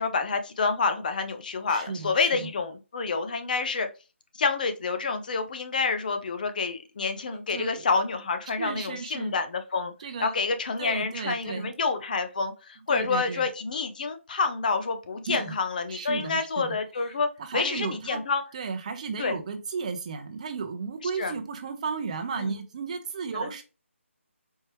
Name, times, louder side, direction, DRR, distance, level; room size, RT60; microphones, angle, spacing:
voice 1, 0.0-3.9 4.4-9.9 10.2-17.3 17.5-18.4 19.2-19.4 21.2-21.3 22.4-22.6 23.3-23.5, left 4 dB, 40° left, 8 dB, 0.7 m, -28 dB
voice 2, 1.7-2.5 7.5-7.8 8.6-9.3 10.0-10.4 10.8-11.7 12.9-13.5 15.3-15.6 15.9-16.8 17.4-18.2 18.5-23.6, right 5 dB, 30° right, 7 dB, 0.8 m, -34 dB
4.5 x 3.2 x 3.0 m, 0.30 s
figure-of-eight pair, 160°, 7 cm